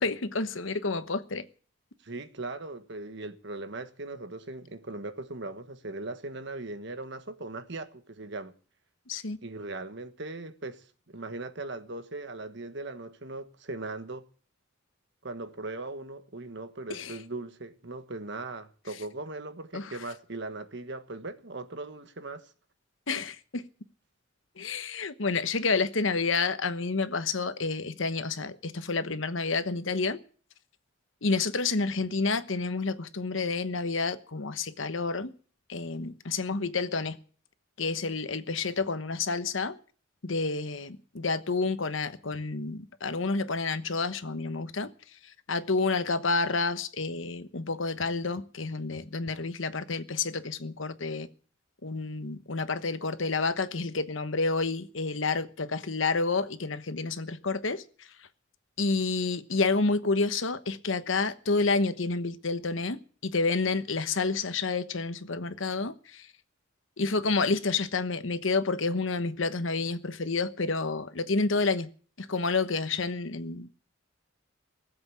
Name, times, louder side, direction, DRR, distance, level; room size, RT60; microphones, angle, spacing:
voice 1, 0.0-1.4 9.1-9.4 16.9-17.2 19.7-19.9 23.1-23.6 24.6-30.2 31.2-35.3 35.7-37.2 37.8-39.8 40.2-44.9 45.5-51.3 51.8-58.1 58.8-66.3 67.0-71.9 72.2-73.7, left 3 dB, 70° left, 1.1 m, -29 dB
voice 2, 2.0-8.5 9.4-14.2 15.2-22.5, right 2 dB, 60° right, 1.4 m, -39 dB
19.0 x 8.0 x 8.4 m
head